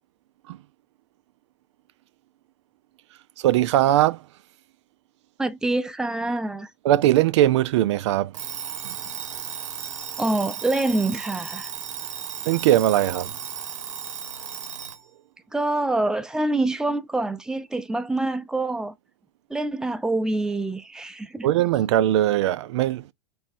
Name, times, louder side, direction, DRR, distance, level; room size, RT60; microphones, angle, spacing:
voice 1, 3.4-4.2 6.8-8.3 12.5-13.3 21.4-23.1, right 13 dB, 70° right, 0.4 m, -20 dB
voice 2, 5.4-6.7 10.2-11.7 15.5-18.9 19.5-21.5, right 2 dB, 5° right, 0.6 m, -26 dB
Alarm, 8.3-15.0, right 8 dB, 85° right, 0.8 m, -35 dB
3.5 x 3.1 x 4.2 m
hypercardioid pair, 110°, 16 cm